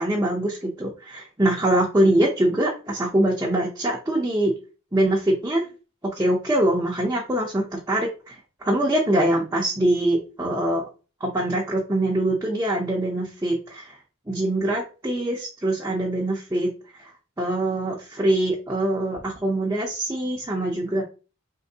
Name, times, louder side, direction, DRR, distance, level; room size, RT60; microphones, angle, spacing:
voice 1, 0.0-4.5 4.9-5.7 6.1-10.8 11.2-14.0 14.3-16.7 17.0-17.1 17.4-21.0, right 1 dB, 15° right, -3 dB, 0.5 m, -23 dB
4.4 x 3.1 x 2.7 m, 0.34 s
head